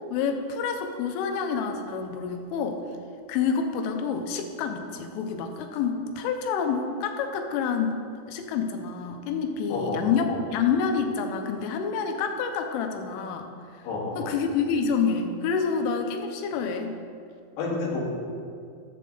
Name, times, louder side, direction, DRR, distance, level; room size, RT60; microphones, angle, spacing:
voice 1, 0.1-2.8 3.3-8.0 8.3-13.5 14.2-16.9, left 6 dB, 80° left, 5 dB, 3.2 m, -28 dB
voice 2, 9.7-10.4 13.8-14.3 17.6-18.1, left 3 dB, 65° left, -4 dB, 4.0 m, -30 dB
14.0 x 7.6 x 3.9 m, 2.3 s
omnidirectional pair, 5.7 m